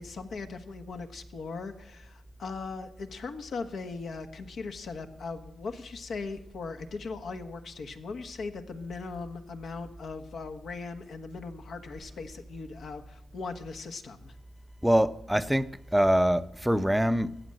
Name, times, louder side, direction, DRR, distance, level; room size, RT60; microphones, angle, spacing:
voice 1, 0.0-14.3, left 4 dB, 70° left, 1.4 m, -39 dB
voice 2, 14.8-17.4, equal, 5° right, 0.6 m, -24 dB
14.5 x 8.7 x 7.7 m
cardioid pair, 90°, 0 cm